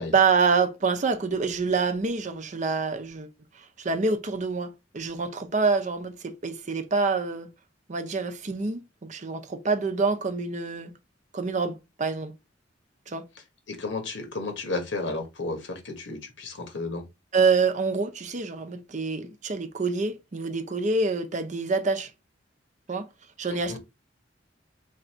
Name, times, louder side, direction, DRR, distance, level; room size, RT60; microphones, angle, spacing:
voice 1, 0.1-3.3 3.8-7.5 7.9-10.9 11.3-12.3 13.1-13.2 17.3-22.1 22.9-23.1 23.4-23.8, right 4 dB, 40° right, 0.6 m, -26 dB
voice 2, 13.7-17.0 23.5-23.8, left 3 dB, 85° left, 1.3 m, -33 dB
3.3 x 2.6 x 4.2 m
head